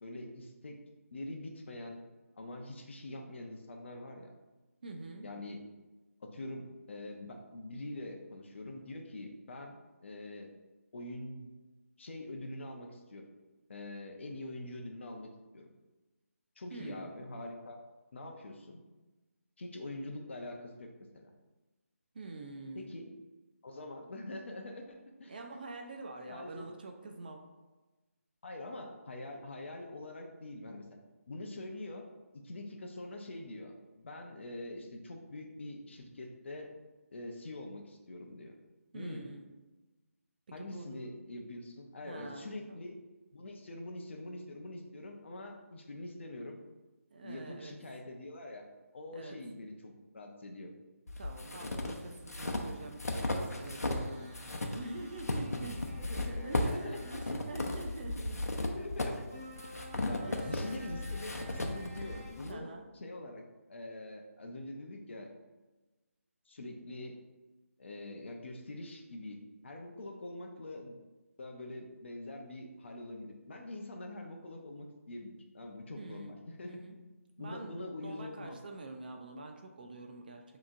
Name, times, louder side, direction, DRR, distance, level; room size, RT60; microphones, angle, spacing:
voice 1, 0.0-0.8 1.1-2.0 2.4-4.3 5.2-5.6 6.2-9.8 10.0-10.5 10.9-11.5 12.0-13.2 13.7-15.7 16.6-17.8 18.1-18.8 19.6-21.3 22.8-23.1 23.6-25.3 26.3-26.7 28.4-31.0 31.3-32.1 32.3-36.7 37.1-38.5 38.9-39.3 40.5-43.0 43.3-46.6 47.2-48.6 48.9-50.7 56.0-57.0 58.6-59.2 59.9-63.4 63.7-65.3 66.5-67.2 67.8-71.0 71.4-76.8 77.4-78.6, left 1 dB, 50° left, 2 dB, 0.7 m, -44 dB
voice 2, 4.8-5.3 16.7-17.1 22.1-22.9 25.3-27.4 38.9-39.4 40.5-41.1 42.0-42.8 47.1-47.7 49.1-49.4 51.2-55.8 56.1-58.4 60.2-60.8 62.5-62.8 76.0-76.3 76.7-77.0 77.4-80.4, right 2 dB, 35° right, 3 dB, 0.5 m, -46 dB
sound 1, 51.1-54.1 54.3-62.5, left 2 dB, 85° left, 0.7 m, -36 dB
sound 2, 53.5-57.3 59.3-62.3, equal, 15° right, 1.4 m, -52 dB
7.1 x 3.0 x 2.5 m, 1.2 s
figure-of-eight pair, 165°, 8 cm